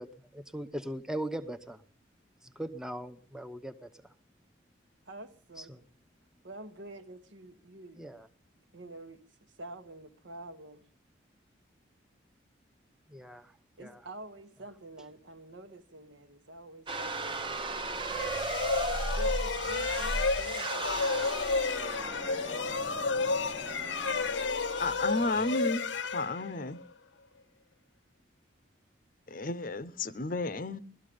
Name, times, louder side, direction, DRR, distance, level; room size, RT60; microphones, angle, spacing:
voice 1, 0.0-1.8 2.4-3.9 5.6-5.8 8.0-8.3 13.1-13.5 13.8-14.0, right 1 dB, 5° right, 0.7 m, -39 dB
voice 2, 5.0-5.9 6.4-8.1 8.7-9.2 9.6-10.9 13.8-17.5 18.2-18.4 18.9-21.5, right 1 dB, 75° right, 1.3 m, -47 dB
sound 1, 16.9-25.7, right 2 dB, 25° right, 0.9 m, -36 dB
sound 2, 18.1-26.9, left 4 dB, 75° left, 0.8 m, -32 dB
voice 3, 24.8-25.8 26.1-26.8 29.3-30.8, left 2 dB, 45° left, 0.7 m, -32 dB
18.0 x 13.0 x 5.1 m
head